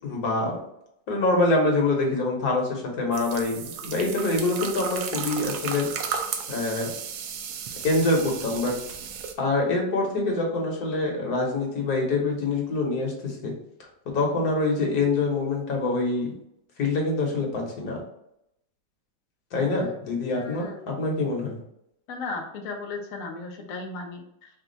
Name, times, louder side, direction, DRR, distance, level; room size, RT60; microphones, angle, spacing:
voice 1, 0.0-0.6 1.1-5.9 6.5-6.9 7.8-8.7 9.4-13.5 14.1-16.3 16.8-18.0 19.5-21.6, left 2 dB, 55° left, -1 dB, 1.4 m, -25 dB
sound 1, 3.1-9.3, right 7 dB, 75° right, 0.9 m, -34 dB
voice 2, 19.6-20.0 20.3-20.9 22.1-24.5, left 3 dB, 75° left, 1 dB, 0.8 m, -36 dB
4.2 x 2.3 x 3.8 m, 0.78 s
omnidirectional pair, 2.2 m